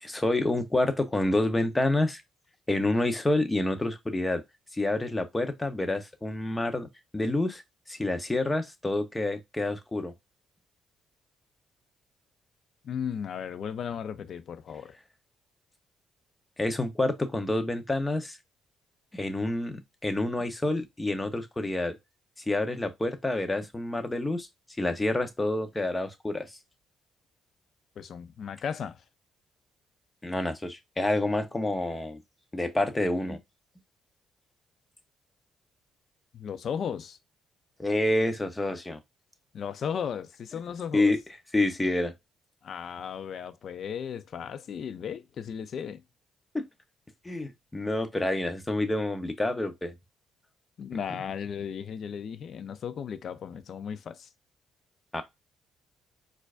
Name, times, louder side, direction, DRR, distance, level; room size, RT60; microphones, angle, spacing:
voice 1, 0.0-2.2 2.7-4.4 4.7-6.9 7.1-7.6 7.9-10.1 16.6-18.4 19.1-22.0 22.5-24.5 24.8-26.5 30.2-32.2 32.5-33.4 37.8-39.0 40.9-41.2 41.5-42.1 46.5-46.6 47.2-49.9 55.1-55.2, left 2 dB, 15° left, 0.7 m, -28 dB
voice 2, 12.8-15.0 28.0-29.0 36.3-37.2 39.5-41.1 42.6-46.0 50.8-54.3, left 7 dB, 60° left, 0.4 m, -35 dB
4.4 x 2.4 x 2.4 m
cardioid pair, 90°, 0 cm